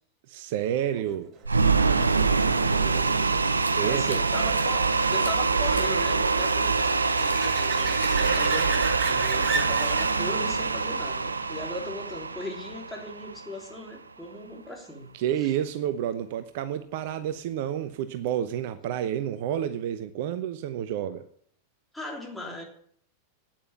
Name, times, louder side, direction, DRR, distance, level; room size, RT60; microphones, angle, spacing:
voice 1, 0.3-1.3 3.8-4.2 15.1-21.2, right 10 dB, 50° right, 11 dB, 0.8 m, -29 dB
sound 1, 1.4-12.6 18.3-18.4, right 6 dB, 35° right, 1.4 m, -38 dB
sound 2, 1.4-13.6, right 4 dB, 80° right, 0.6 m, -25 dB
voice 2, 2.1-3.2 3.8-15.1 21.9-22.6, left 2 dB, 5° left, 0 dB, 3.4 m, -39 dB
Scissors, 3.3-4.9 5.2-5.9 6.2-6.5 7.2-7.7 8.0-8.5, left 2 dB, 85° left, 1.4 m, -43 dB
9.1 x 8.6 x 8.5 m, 0.63 s
figure-of-eight pair, 90°, 0 cm